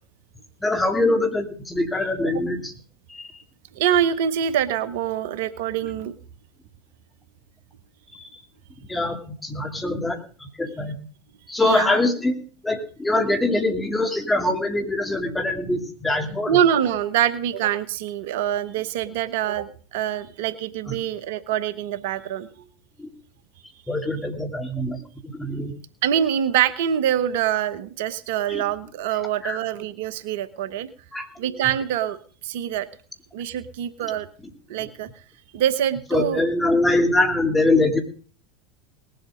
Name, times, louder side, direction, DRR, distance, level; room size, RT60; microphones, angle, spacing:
voice 1, 0.6-2.7 3.1-3.3 8.1-8.4 8.9-10.9 11.5-12.4 12.6-16.6 20.9-21.0 23.0-23.1 23.9-25.0 25.3-25.7 28.5-28.6 29.4-29.6 31.1-31.3 36.1-38.0, left 2 dB, 10° left, 5 dB, 2.8 m, -23 dB
voice 2, 3.7-6.1 11.6-12.1 16.5-22.7 26.0-30.9 31.4-32.2 32.4-32.9 33.3-34.3 34.7-35.1 35.5-36.4, right 10 dB, 70° right, 14 dB, 0.9 m, -24 dB
19.5 x 8.0 x 5.1 m, 0.40 s
hypercardioid pair, 85°, 0 cm